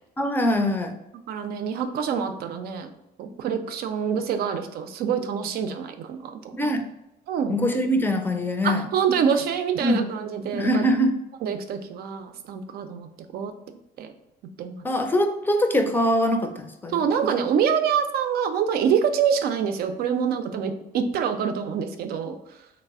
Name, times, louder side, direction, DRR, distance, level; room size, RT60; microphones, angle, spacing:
voice 1, 0.2-0.9 6.5-6.8 7.5-8.9 9.8-10.0 10.5-11.2 14.8-17.1, equal, 10° left, 5 dB, 0.5 m, -23 dB
voice 2, 1.3-2.9 3.2-6.6 7.3-7.6 8.6-10.8 11.4-13.5 14.0-14.1 14.6-14.8 16.9-22.4, right 7 dB, 70° right, 7 dB, 0.4 m, -26 dB
3.2 x 2.0 x 3.5 m, 0.85 s
supercardioid pair, 85°, 17 cm